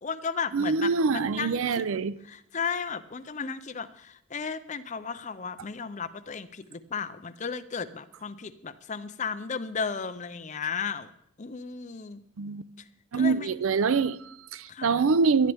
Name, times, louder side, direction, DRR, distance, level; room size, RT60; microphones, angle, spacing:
voice 1, 0.0-1.9 2.3-11.1 11.4-12.2 13.1-13.5 14.7-15.1, left 5 dB, 35° left, 0.6 m, -34 dB
voice 2, 0.5-2.2 12.4-12.6 13.1-15.5, right 4 dB, 75° right, 0.5 m, -25 dB
18.5 x 12.0 x 3.5 m
head